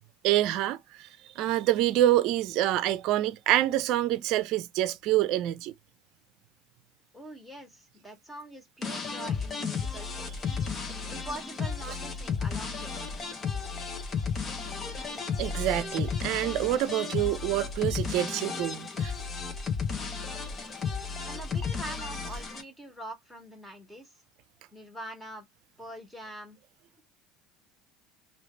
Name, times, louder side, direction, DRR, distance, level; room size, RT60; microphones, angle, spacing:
voice 1, 0.2-1.1 1.3-5.7 15.4-19.1, right 14 dB, 65° right, 0.5 m, -26 dB
voice 2, 7.1-10.4 10.9-13.1 21.2-24.2 24.7-25.5 25.8-26.6, right 1 dB, 5° left, 1.8 m, -44 dB
sound 1, 8.8-22.6, left 5 dB, 35° left, 1.1 m, -33 dB
3.1 x 2.9 x 3.2 m
supercardioid pair, 90°, 0 cm